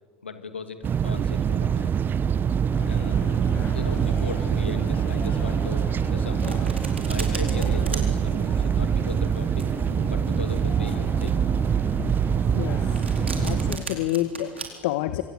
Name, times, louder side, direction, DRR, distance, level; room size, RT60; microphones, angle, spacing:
voice 1, 0.2-2.0 2.9-3.2 3.7-6.6 7.1-9.7 10.0-11.4, left 5 dB, 90° left, 8 dB, 2.4 m, -38 dB
sound 1, 0.8-13.8, right 7 dB, 35° right, 1.1 m, -24 dB
sound 2, 2.7-13.8, left 4 dB, 45° left, 5.2 m, -39 dB
Domestic sounds home sounds, 6.0-14.6, right 4 dB, 90° right, 4.2 m, -38 dB
voice 2, 12.5-13.2 13.4-15.2, left 14 dB, 65° left, 11 dB, 1.5 m, -29 dB
26.5 x 26.5 x 8.1 m, 1.5 s
hypercardioid pair, 70°, 6 cm